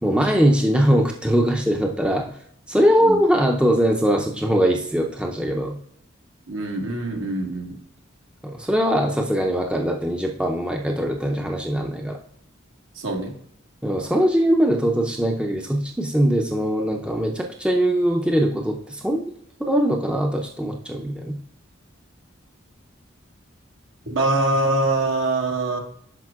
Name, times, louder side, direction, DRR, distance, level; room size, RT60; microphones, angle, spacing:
voice 1, 0.0-2.3 2.7-5.7 8.4-12.2 13.8-19.2 19.7-21.3, equal, 5° right, 1 dB, 0.5 m, -21 dB
voice 2, 6.5-7.8 12.9-13.3 24.1-25.8, right 2 dB, 75° right, 0 dB, 1.6 m, -23 dB
10.5 x 5.0 x 2.4 m, 0.67 s
head